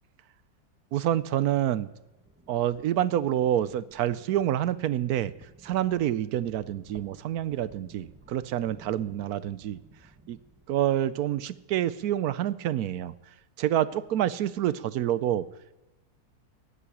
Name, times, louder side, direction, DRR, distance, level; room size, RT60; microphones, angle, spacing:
voice 1, 0.9-1.9 2.5-5.3 5.6-9.8 10.3-10.4 10.7-13.1 13.6-15.5, right 11 dB, 75° right, 17 dB, 1.1 m, -27 dB
sound 1, 2.0-11.3, right 2 dB, 10° right, 0.9 m, -56 dB
15.0 x 7.7 x 9.9 m, 1.0 s
omnidirectional pair, 1.7 m